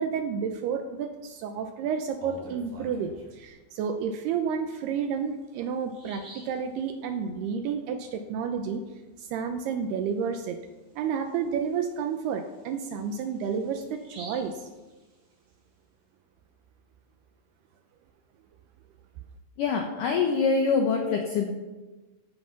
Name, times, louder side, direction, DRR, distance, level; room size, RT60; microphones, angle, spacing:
voice 1, 0.0-8.8 9.2-10.6 11.0-14.7, right 6 dB, 85° right, 6 dB, 2.3 m, -31 dB
Bird vocalization bird call bird song, 2.0-3.4 4.9-5.0 5.4-5.5 5.9-6.6 10.1-10.2 10.6-10.7 11.3-15.5, right 2 dB, 35° right, 5.0 m, -49 dB
voice 2, 19.6-21.5, left 5 dB, 80° left, 2 dB, 1.9 m, -25 dB
16.0 x 10.0 x 5.8 m, 1.2 s
omnidirectional pair, 5.6 m